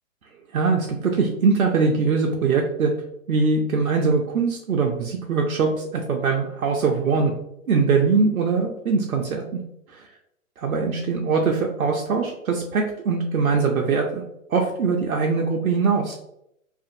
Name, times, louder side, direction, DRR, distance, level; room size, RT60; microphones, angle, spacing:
voice 1, 0.5-2.9 3.3-7.3 7.7-9.6 9.9-10.1 10.6-14.2 14.5-16.2, right 4 dB, 90° right, 1 dB, 0.5 m, -22 dB
2.5 x 2.4 x 2.5 m, 0.79 s
figure-of-eight pair, 120°, 42 cm